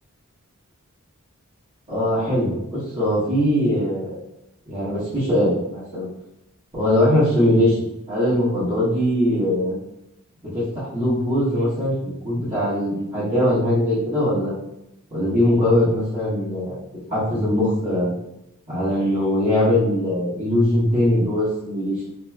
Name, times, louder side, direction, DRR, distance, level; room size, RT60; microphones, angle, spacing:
voice 1, 1.9-4.2 4.7-6.1 6.7-9.8 10.4-14.5 15.1-16.7 17.1-18.1 18.7-22.1, left 1 dB, 35° right, -13 dB, 1.2 m, -21 dB
3.0 x 2.6 x 2.2 m, 0.85 s
head